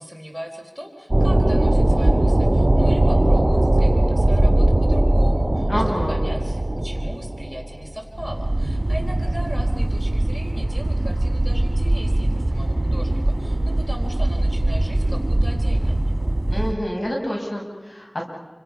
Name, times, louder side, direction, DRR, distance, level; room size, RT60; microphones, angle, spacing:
voice 1, 0.0-16.3, equal, 15° left, 2 dB, 4.1 m, -38 dB
sound 1, 1.1-16.7, right 1 dB, 40° right, 1.7 m, -20 dB
voice 2, 5.7-6.2 16.5-18.2, equal, 75° left, -2 dB, 6.5 m, -27 dB
29.0 x 25.5 x 5.7 m, 1.2 s
wide cardioid pair, 45°, 0 cm